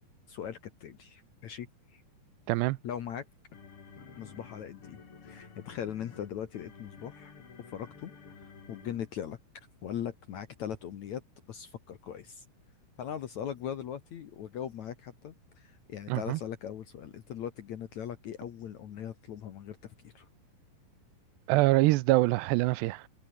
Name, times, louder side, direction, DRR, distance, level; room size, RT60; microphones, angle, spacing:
voice 1, 0.3-2.0 2.8-3.2 4.2-7.3 7.7-8.1 8.4-11.2 11.5-12.5 13.0-20.3, left 9 dB, 65° left, 2.0 m, -40 dB
voice 2, 2.5-2.8 16.1-16.4 21.5-23.0, right 19 dB, 90° right, 2.8 m, -24 dB
sound 1, 3.0-9.4, left 6 dB, 35° left, 3.0 m, -52 dB
omnidirectional pair, 4.9 m